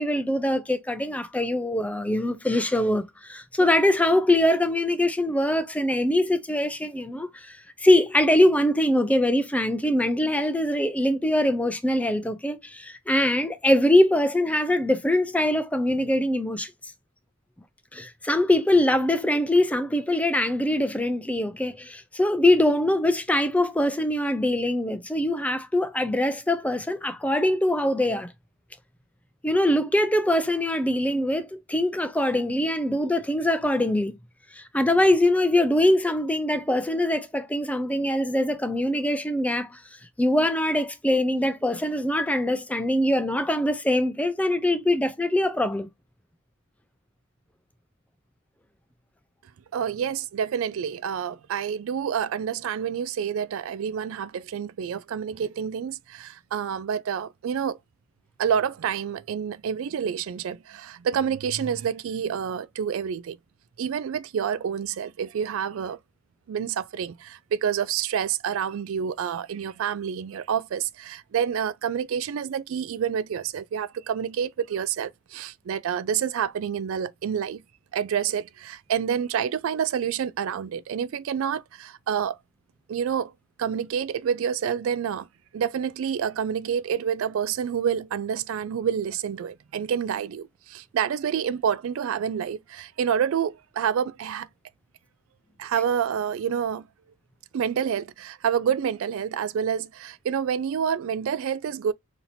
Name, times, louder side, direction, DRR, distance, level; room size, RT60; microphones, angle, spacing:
voice 1, 0.0-16.9 17.9-28.3 29.4-34.1 34.5-39.8 40.2-45.9, left 1 dB, 5° left, 0.4 m, -23 dB
voice 2, 49.7-57.8 58.4-63.4 63.8-66.0 66.5-77.6 77.9-82.4 82.9-83.3 83.6-85.3 85.5-94.5 95.6-96.9 97.5-101.9, right 8 dB, 65° right, 0.3 m, -28 dB
5.6 x 2.8 x 2.6 m
head